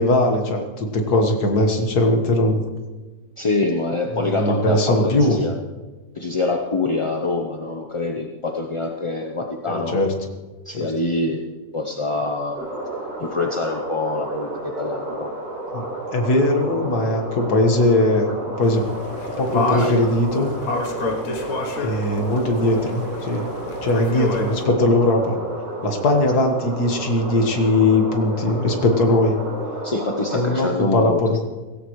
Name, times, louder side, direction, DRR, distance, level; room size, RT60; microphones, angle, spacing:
voice 1, 0.0-2.6 4.1-5.4 9.7-10.1 15.7-15.8 16.1-18.3 18.6-18.8 19.4-20.5 21.8-23.5 23.8-25.4 25.8-29.3 30.3-31.4, left 1 dB, 80° left, 3 dB, 2.2 m, -20 dB
voice 2, 3.4-5.5 6.1-10.0 10.6-11.4 11.7-12.6 13.2-15.3 19.7-19.9 29.8-31.4, left 3 dB, 30° left, 2 dB, 0.6 m, -25 dB
sound 1, 12.5-30.7, right 2 dB, 75° right, 4.9 m, -32 dB
sound 2, 18.6-24.6, left 3 dB, 65° left, 1.6 m, -29 dB
17.5 x 16.0 x 3.2 m, 1.2 s
omnidirectional pair, 1.6 m